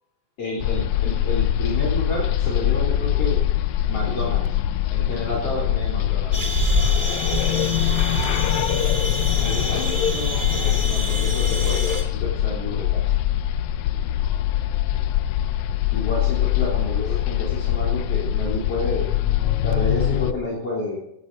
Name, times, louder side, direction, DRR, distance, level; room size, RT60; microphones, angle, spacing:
voice 1, 0.4-3.4 3.9-4.6 4.9-6.4 9.4-13.0 15.9-19.1 19.6-21.0, left 2 dB, 50° left, -5 dB, 4.3 m, -30 dB
sound 1, 0.6-20.3, left 12 dB, 75° left, 2.0 m, -23 dB
sound 2, 6.3-12.0, right 1 dB, 15° right, 2.2 m, -27 dB
17.0 x 14.5 x 4.0 m, 0.84 s
omnidirectional pair, 3.5 m